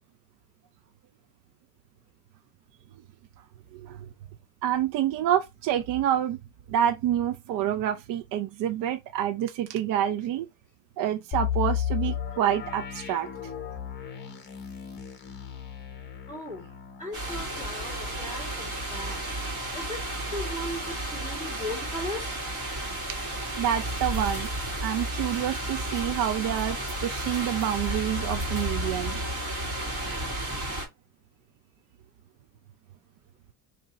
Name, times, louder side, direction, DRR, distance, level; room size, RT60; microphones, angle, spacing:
voice 1, 3.7-4.0 4.6-6.4 6.7-10.5 11.0-13.3 23.5-24.5 24.8-26.8 27.0-29.2, right 10 dB, 55° right, 0.5 m, -27 dB
sound 1, 11.3-21.0 21.4-21.5 22.0-22.2, left 9 dB, 25° left, 0.8 m, -35 dB
voice 2, 16.3-16.7 17.0-19.2 19.7-20.0 20.3-22.4, left 1 dB, 20° right, 1.8 m, -37 dB
sound 2, 17.1-30.9, right 1 dB, 35° right, 2.1 m, -32 dB
2.9 x 2.8 x 4.0 m
cardioid pair, 160°, 39 cm